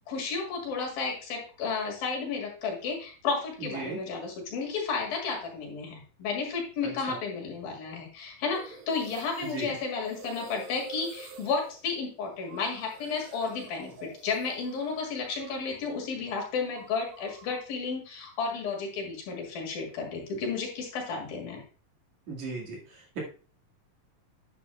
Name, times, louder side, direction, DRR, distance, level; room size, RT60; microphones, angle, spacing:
voice 1, 0.1-21.6, left 4 dB, 75° left, 0 dB, 3.7 m, -32 dB
voice 2, 6.8-7.2 9.4-9.7 22.3-23.2, right 3 dB, 55° right, -2 dB, 3.1 m, -37 dB
sound 1, 8.5-17.7, right 4 dB, 85° right, 1.1 m, -49 dB
9.9 x 8.5 x 2.3 m, 0.37 s
omnidirectional pair, 4.2 m